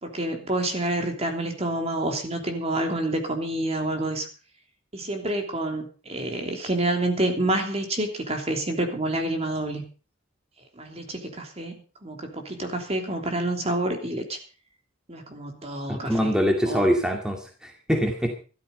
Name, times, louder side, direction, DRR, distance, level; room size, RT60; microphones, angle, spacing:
voice 1, 0.0-4.3 4.9-9.9 10.8-14.4 15.1-16.3 16.6-16.9, right 1 dB, 35° right, 4 dB, 3.2 m, -28 dB
voice 2, 15.9-18.4, equal, 5° right, 2 dB, 2.2 m, -24 dB
13.5 x 13.5 x 5.4 m, 0.37 s
head